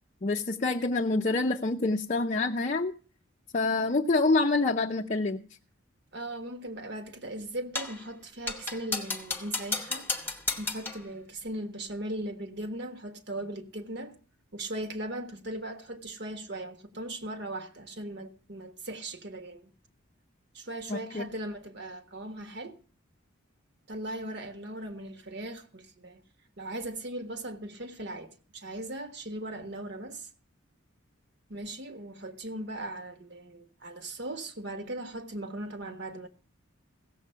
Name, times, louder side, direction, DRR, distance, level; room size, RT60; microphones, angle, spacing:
voice 1, 0.2-2.9 3.5-5.4 20.9-21.3, left 3 dB, 35° left, 0.5 m, -26 dB
voice 2, 6.1-10.1 10.6-14.1 14.5-19.7 20.5-22.8 23.9-26.2 26.6-30.3 31.5-36.3, right 1 dB, 55° right, 1.4 m, -38 dB
sound 1, 7.7-8.0 8.5-11.1, left 3 dB, 10° left, 0.9 m, -33 dB
16.0 x 7.5 x 5.6 m
head